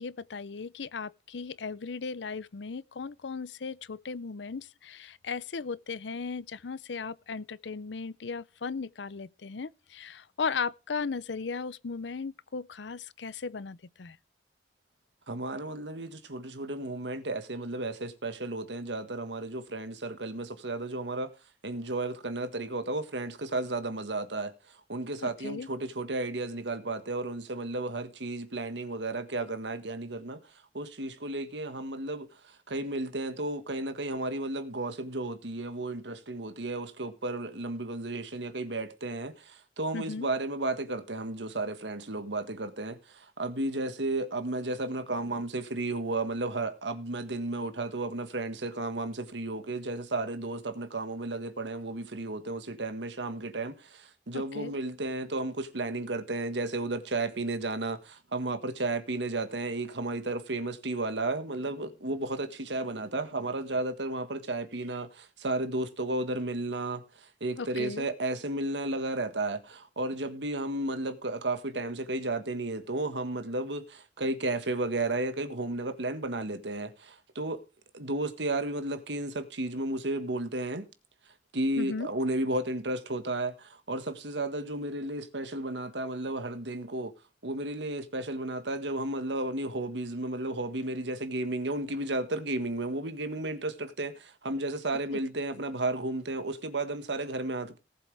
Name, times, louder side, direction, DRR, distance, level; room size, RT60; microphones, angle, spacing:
voice 1, 0.0-14.2 25.2-25.7 39.9-40.3 54.3-54.7 67.6-68.1 81.8-82.1, left 5 dB, 85° left, 0.6 m, -36 dB
voice 2, 15.3-21.3 21.6-24.5 24.9-30.4 30.7-77.6 77.9-80.9 81.5-87.1 87.4-97.8, right 2 dB, 80° right, 1.6 m, -33 dB
18.5 x 7.7 x 3.4 m
head